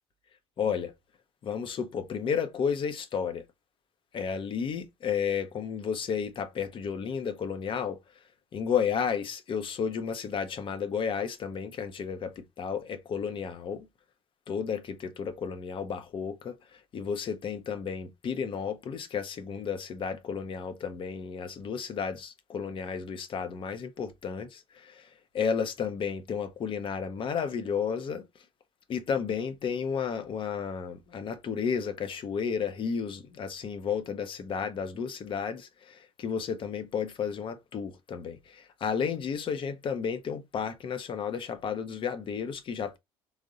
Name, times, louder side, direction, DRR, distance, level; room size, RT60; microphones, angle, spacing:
voice 1, 0.6-0.9 1.4-3.4 4.1-8.0 8.5-13.9 14.5-25.1 25.3-28.3 28.9-43.0, left 6 dB, 45° left, 0.6 m, -32 dB
3.5 x 2.1 x 2.6 m
hypercardioid pair, 70°, 12 cm